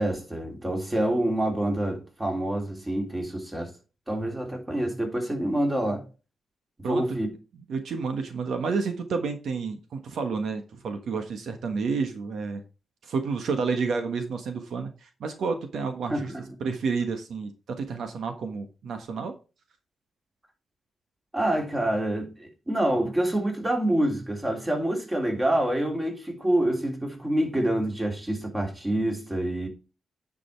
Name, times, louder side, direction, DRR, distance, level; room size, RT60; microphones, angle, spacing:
voice 1, 0.0-3.7 4.1-6.0 6.8-7.3 16.1-16.5 21.3-29.7, right 1 dB, 15° right, 3.3 m, -27 dB
voice 2, 7.7-12.6 13.0-16.3 16.6-17.5 17.8-19.3, right 4 dB, 75° right, 1.4 m, -30 dB
10.0 x 5.2 x 4.6 m
cardioid pair, 105°, 0 cm